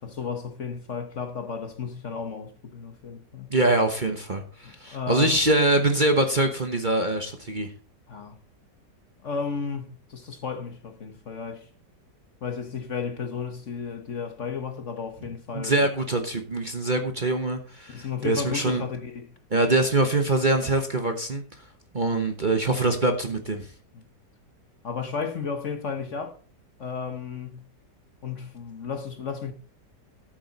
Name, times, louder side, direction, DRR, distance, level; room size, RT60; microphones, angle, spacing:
voice 1, 0.0-3.5 4.6-5.3 8.1-8.4 9.2-11.7 12.4-15.9 17.9-19.3 23.9-24.0 24.8-26.4 26.8-27.6 28.2-29.5, left 6 dB, 50° left, 1.3 m, -33 dB
voice 2, 3.5-7.7 15.5-18.8 19.5-21.4 21.9-23.7, right 2 dB, 30° right, 1.0 m, -24 dB
13.5 x 7.5 x 4.1 m
omnidirectional pair, 1.9 m